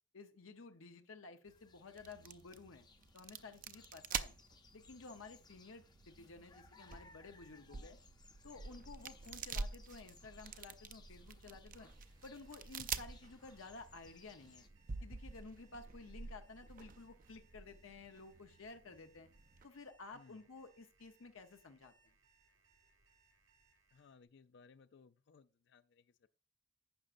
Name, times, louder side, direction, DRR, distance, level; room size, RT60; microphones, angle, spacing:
voice 1, 0.1-2.9 3.1-4.4 4.7-8.0 8.4-11.9 12.2-14.7 15.0-19.3 19.6-21.9, left 3 dB, 85° left, 0.9 m, -54 dB
sound 1, 1.4-14.7, left 4 dB, 20° left, 0.7 m, -64 dB
sound 2, 2.0-19.7, right 5 dB, 45° right, 0.5 m, -48 dB
Alarm, 11.7-24.2, right 4 dB, 85° right, 5.0 m, -73 dB
voice 2, 20.1-20.4 23.9-26.3, left 5 dB, 60° left, 0.4 m, -63 dB
11.5 x 8.6 x 2.5 m
head